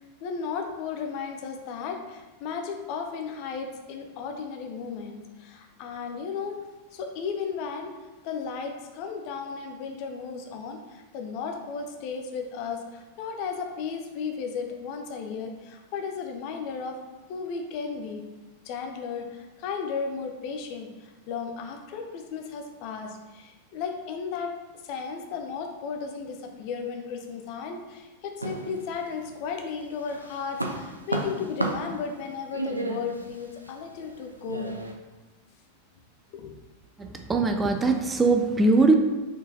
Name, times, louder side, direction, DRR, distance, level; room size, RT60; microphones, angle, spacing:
voice 1, 0.2-6.6 6.9-7.9 8.2-17.0 17.3-18.2 18.6-24.5 24.8-34.7 36.3-36.5, left 5 dB, 45° left, 4 dB, 0.5 m, -34 dB
sound 1, 28.4-29.4 29.8-34.9, right 2 dB, 85° right, 0.4 m, -33 dB
voice 2, 37.0-38.9, right 3 dB, 15° right, 5 dB, 0.3 m, -21 dB
4.5 x 3.8 x 2.8 m, 1.2 s
figure-of-eight pair, 90°, 0 cm